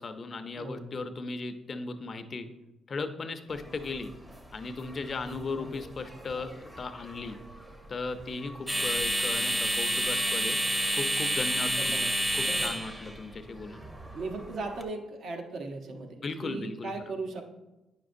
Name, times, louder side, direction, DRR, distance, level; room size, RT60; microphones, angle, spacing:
voice 1, 0.0-2.5 2.9-4.1 4.5-7.4 7.9-10.6 11.0-12.0 12.3-13.8 16.2-16.9, left 3 dB, 40° left, 8 dB, 0.6 m, -37 dB
voice 2, 0.6-1.0 5.2-5.4 11.8-13.1 14.1-17.5, right 3 dB, 60° right, 4 dB, 0.9 m, -38 dB
sound 1, 3.5-14.8, equal, 10° right, 0.7 m, -31 dB
9.2 x 6.0 x 2.6 m, 1.0 s
cardioid pair, 90°, 0 cm